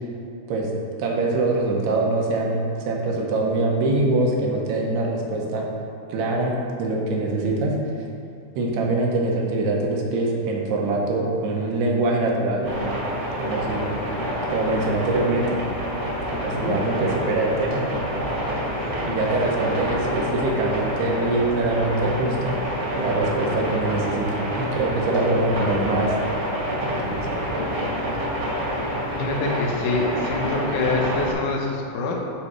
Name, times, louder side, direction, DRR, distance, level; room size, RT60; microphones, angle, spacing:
voice 1, 1.0-5.7 6.1-7.8 8.6-13.1 13.4-13.9 14.5-15.5 16.3-17.8 18.8-26.1 26.7-27.3, right 2 dB, 75° right, -1 dB, 3.1 m, -24 dB
sound 1, 12.6-31.3, equal, 45° right, 1.8 m, -27 dB
voice 2, 29.2-32.1, left 3 dB, 75° left, -1 dB, 1.9 m, -25 dB
10.5 x 4.9 x 4.9 m, 2.6 s
omnidirectional pair, 4.7 m